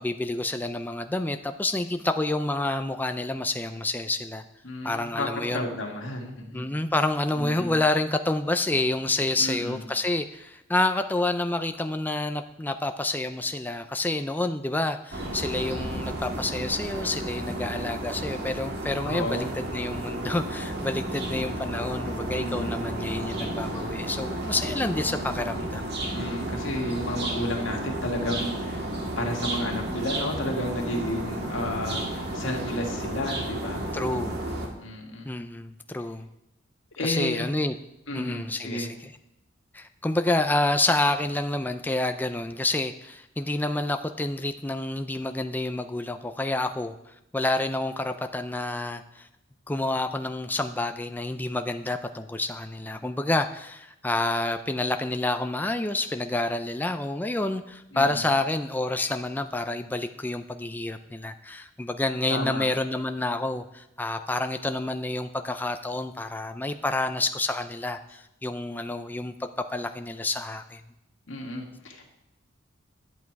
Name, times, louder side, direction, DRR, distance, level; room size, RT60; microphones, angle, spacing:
voice 1, 0.0-4.4 4.8-5.7 6.5-25.8 33.9-34.4 35.3-36.3 37.0-37.7 38.1-39.1 39.7-46.9 47.3-49.3 49.7-70.8, left 2 dB, 10° left, 8 dB, 0.4 m, -28 dB
voice 2, 4.6-6.6 7.4-7.8 9.4-9.8 19.1-19.5 22.3-22.8 26.1-28.8 29.2-33.8 34.8-35.3 37.0-37.5 38.1-38.9 57.9-58.2 62.3-62.6 71.3-72.0, left 1 dB, 90° left, 1 dB, 2.1 m, -32 dB
sound 1, 15.1-34.7, right 1 dB, 60° right, 1.9 m, -32 dB
11.0 x 8.3 x 4.7 m, 0.87 s
head